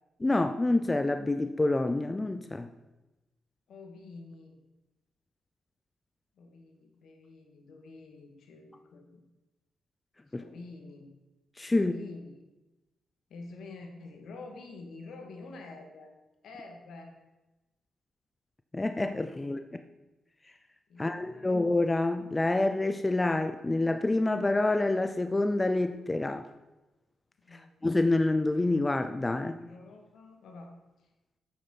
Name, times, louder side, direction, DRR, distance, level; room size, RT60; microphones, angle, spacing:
voice 1, 0.2-2.7 10.3-10.4 11.6-11.9 18.7-19.6 21.0-26.5 27.8-29.6, left 2 dB, 15° left, 8 dB, 0.4 m, -27 dB
voice 2, 3.7-4.6 6.4-9.2 10.4-11.1 11.7-12.3 13.3-16.1 16.4-17.1 19.4-19.5 20.9-21.6 27.4-27.7 29.6-31.1, left 3 dB, 70° left, 3 dB, 2.0 m, -47 dB
8.6 x 7.4 x 5.8 m, 1.0 s
cardioid pair, 125°, 0 cm